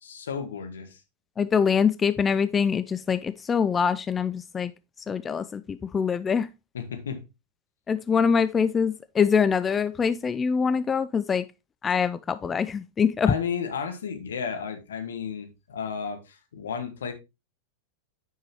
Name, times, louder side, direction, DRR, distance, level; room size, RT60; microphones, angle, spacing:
voice 1, 0.0-1.0 6.7-7.2 13.2-17.1, left 6 dB, 70° left, 1.4 m, -33 dB
voice 2, 1.4-4.7 5.0-6.5 7.9-11.5 11.8-13.3, left 6 dB, 20° left, 0.3 m, -24 dB
9.4 x 5.5 x 2.8 m
figure-of-eight pair, 95°, 0 cm